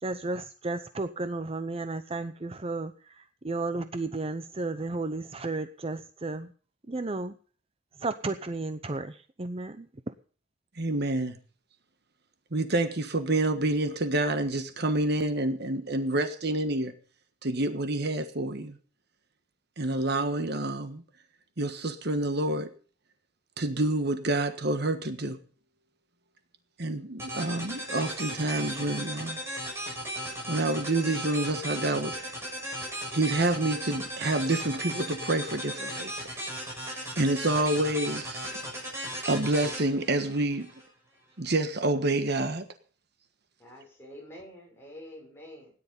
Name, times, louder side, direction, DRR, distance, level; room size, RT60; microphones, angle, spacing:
voice 1, 0.0-6.5 6.9-7.3 8.0-9.9, right 3 dB, 30° right, 0.7 m, -33 dB
voice 2, 10.8-11.4 12.5-16.9 17.4-18.8 19.8-21.0 21.6-22.7 23.6-25.4 26.8-29.4 30.5-32.3 33.1-36.1 37.2-38.4 39.2-40.7 41.4-42.6, right 2 dB, 55° right, 1.4 m, -28 dB
sound 1, 27.2-40.9, equal, 15° right, 6.3 m, -36 dB
voice 3, 43.6-45.7, equal, 10° left, 6.1 m, -47 dB
17.0 x 10.5 x 5.4 m
head